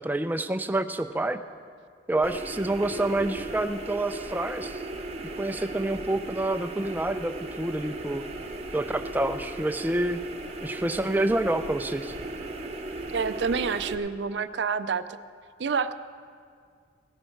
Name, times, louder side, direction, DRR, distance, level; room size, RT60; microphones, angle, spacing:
voice 1, 0.0-1.4 2.1-4.8 5.4-8.2 8.7-10.2 10.6-12.1, right 1 dB, 10° right, 9 dB, 0.4 m, -28 dB
sound 1, 2.2-13.9, right 2 dB, 35° right, 0.8 m, -37 dB
voice 2, 13.1-15.1 15.6-15.9, right 5 dB, 70° right, 12 dB, 0.5 m, -28 dB
18.0 x 10.5 x 4.5 m, 2.2 s
head